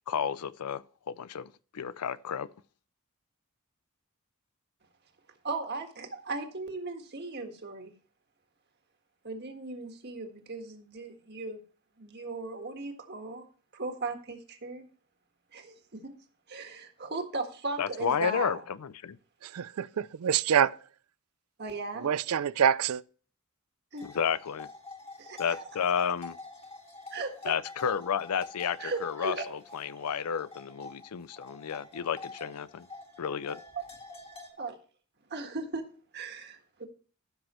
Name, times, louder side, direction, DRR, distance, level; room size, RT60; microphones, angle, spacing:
voice 1, 0.1-2.5 17.8-19.2 24.1-24.7 25.4-26.4 27.4-32.9 33.2-33.6, left 7 dB, 90° left, 0.5 m, -32 dB
voice 2, 5.4-7.9 9.2-11.6 12.0-13.4 13.7-14.8 15.5-16.1 16.5-18.6 21.6-22.1 23.9-24.0 25.2-25.4 27.1-27.3 28.8-29.4 34.6-34.8 35.3-35.9 36.1-36.9, right 3 dB, 50° right, 1.6 m, -37 dB
voice 3, 19.4-20.8 22.0-23.0, right 8 dB, 75° right, 0.4 m, -26 dB
sound 1, 23.9-34.5, left 3 dB, 25° left, 2.0 m, -47 dB
15.0 x 6.1 x 3.1 m
head